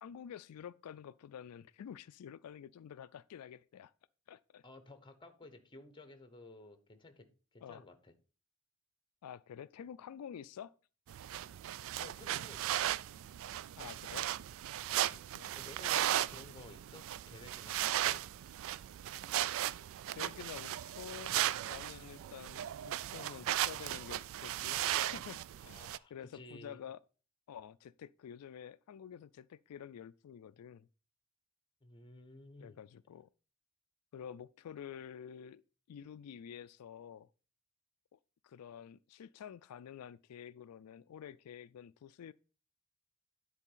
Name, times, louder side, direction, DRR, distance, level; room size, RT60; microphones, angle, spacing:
voice 1, 0.0-3.9 4.3-4.6 7.6-7.8 9.2-10.7 13.8-14.3 15.1-15.6 20.1-21.4 21.7-24.8 25.1-27.0 27.5-30.9 32.6-33.3 34.1-35.6 35.9-37.3 38.1-38.2 38.4-42.3, left 8 dB, 90° left, 0.3 m, -49 dB
voice 2, 4.6-8.1 12.0-13.0 15.0-18.2 25.6-26.8 31.8-32.8, left 2 dB, 20° left, 1.0 m, -55 dB
sound 1, 11.1-26.0, right 12 dB, 65° right, 0.3 m, -36 dB
9.9 x 4.2 x 5.5 m
head